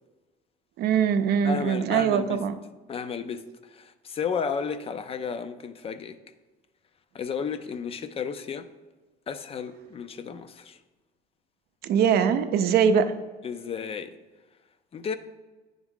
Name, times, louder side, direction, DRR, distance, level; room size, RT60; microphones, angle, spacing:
voice 1, 0.8-2.5 11.8-13.1, right 7 dB, 70° right, 0.5 m, -22 dB
voice 2, 1.4-2.4 2.9-3.4 3.7-6.2 7.1-8.7 9.3-10.8 13.4-14.2 14.9-15.1, left 6 dB, 35° left, 0.4 m, -33 dB
9.7 x 3.6 x 3.6 m
cardioid pair, 110°, 17 cm